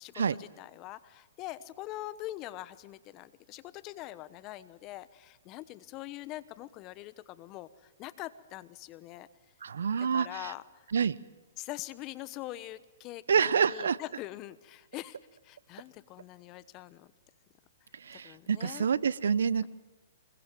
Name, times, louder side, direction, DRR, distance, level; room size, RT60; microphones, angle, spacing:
voice 1, 0.0-9.3 10.1-10.8 11.6-15.2 15.4-17.1 18.1-18.9, left 16 dB, 35° left, 16 dB, 1.1 m, -43 dB
voice 2, 9.6-10.5 10.9-11.2 13.3-14.0 18.0-19.7, right 6 dB, 75° right, 18 dB, 0.8 m, -27 dB
25.0 x 21.5 x 7.6 m, 1.1 s
hypercardioid pair, 125°, 0 cm